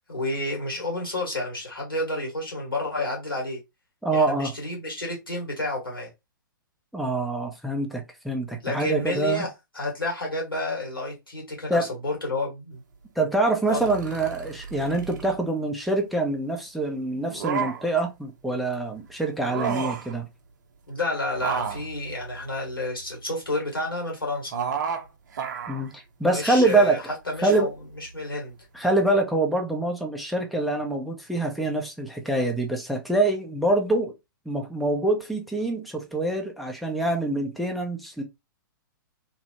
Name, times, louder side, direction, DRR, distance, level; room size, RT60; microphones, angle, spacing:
voice 1, 0.1-3.6 4.1-6.1 8.6-9.5 9.7-12.8 13.7-13.8 20.9-24.5 26.3-27.7 28.0-28.6, left 2 dB, 85° left, 1.7 m, -30 dB
voice 2, 4.0-4.5 6.9-9.5 11.7-11.9 13.2-20.3 25.7-27.1 27.4-27.7 28.7-34.1 34.5-38.2, right 2 dB, ahead, 0.5 m, -25 dB
sound 1, 13.7-15.4 17.2-18.0 19.4-20.2 21.3-23.1 24.5-25.1 25.3-25.9 26.5-26.9 27.5-27.6, right 6 dB, 55° right, 0.6 m, -32 dB
3.0 x 2.0 x 2.9 m
figure-of-eight pair, 115°, 11 cm